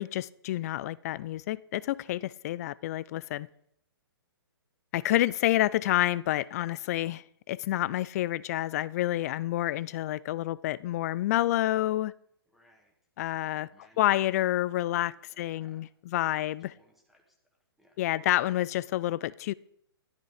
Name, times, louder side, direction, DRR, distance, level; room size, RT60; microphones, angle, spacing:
voice 1, 0.0-3.5 4.9-12.1 13.2-13.7 14.0-16.7 18.0-19.5, left 14 dB, 40° left, 0.4 m, -29 dB
voice 2, 12.5-12.9 13.5-14.3 15.1-15.8 16.7-18.0, equal, ahead, 1.8 m, -64 dB
13.5 x 10.5 x 5.0 m
hypercardioid pair, 135°, 13 cm